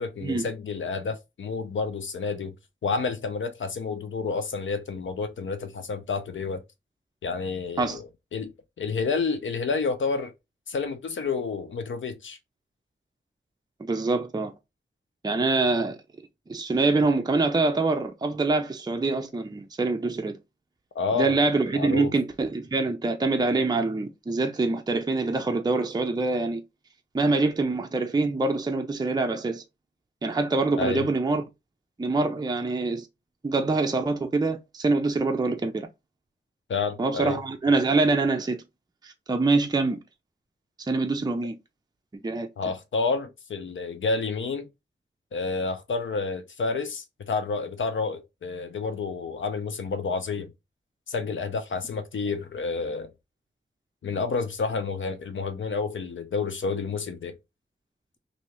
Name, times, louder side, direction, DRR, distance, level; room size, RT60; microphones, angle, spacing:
voice 1, 0.0-2.5 2.8-6.6 7.2-8.5 8.8-10.3 10.7-12.4 20.9-21.4 21.7-22.1 30.8-31.1 36.7-37.4 42.6-44.7 45.3-50.5 51.1-53.1 54.0-57.4, left 4 dB, 85° left, 0.6 m, -29 dB
voice 2, 13.8-14.5 15.2-16.0 16.5-20.4 21.1-26.6 27.1-29.6 30.2-31.4 32.0-33.1 33.4-35.9 37.0-38.6 39.0-40.0 40.8-41.5 42.1-42.5, right 3 dB, 20° right, 0.5 m, -25 dB
2.8 x 2.7 x 3.1 m
wide cardioid pair, 70°, 19 cm